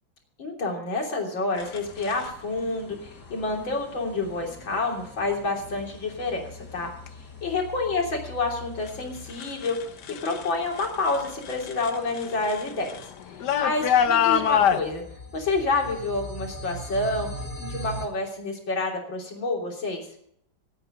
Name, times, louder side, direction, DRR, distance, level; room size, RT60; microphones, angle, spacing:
voice 1, 0.4-6.9 7.4-9.8 10.2-13.0 13.3-15.0 15.3-17.3 17.6-20.0, left 3 dB, 80° left, 1 dB, 4.0 m, -28 dB
sound 1, 1.6-2.3 3.4-3.8 4.3-4.8 5.3-5.8 6.2-10.5 10.7-14.8, left 8 dB, 65° left, 1.5 m, -28 dB
sound 2, 1.8-18.1, right 1 dB, 10° left, 1.4 m, -43 dB
27.0 x 9.1 x 3.8 m, 0.71 s
omnidirectional pair, 2.1 m